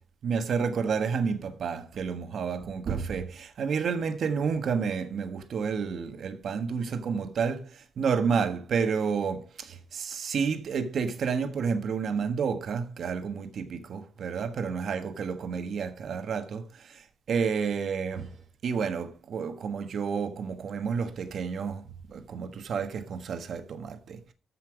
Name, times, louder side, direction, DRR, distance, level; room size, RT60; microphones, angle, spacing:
voice 1, 0.2-18.4 18.6-21.8 22.1-24.3, right 6 dB, 50° right, 1.3 m, -30 dB
14.0 x 5.7 x 4.8 m
cardioid pair, 160°, 0 cm